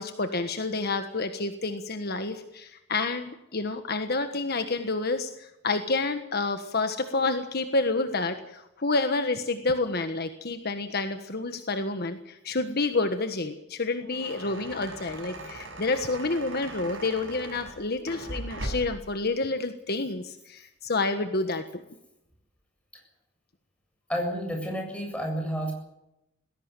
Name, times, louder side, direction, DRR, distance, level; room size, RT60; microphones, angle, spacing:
voice 1, 0.0-21.8, left 3 dB, 50° left, 8 dB, 1.4 m, -29 dB
sound 1, 13.9-19.1, right 1 dB, 70° right, 7.1 m, -39 dB
voice 2, 24.1-25.7, equal, 5° left, 1 dB, 7.5 m, -30 dB
20.0 x 17.0 x 9.2 m, 0.87 s
head